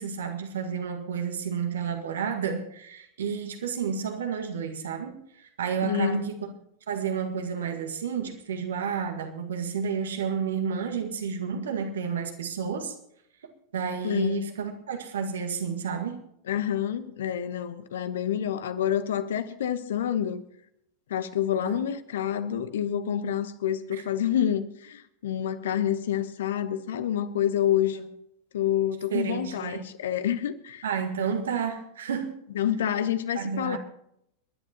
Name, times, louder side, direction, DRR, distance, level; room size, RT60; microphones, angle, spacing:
voice 1, 0.0-6.4 6.9-12.9 13.7-16.2 21.6-21.8 23.9-24.0 29.1-29.9 30.8-32.4 33.4-33.8, right 6 dB, 65° right, 1.8 m, -31 dB
voice 2, 5.8-6.2 14.0-14.4 16.5-20.4 21.1-28.0 28.5-30.8 32.5-33.8, left 10 dB, 60° left, 1.0 m, -28 dB
30.0 x 11.0 x 3.0 m
figure-of-eight pair, 90°, 0 cm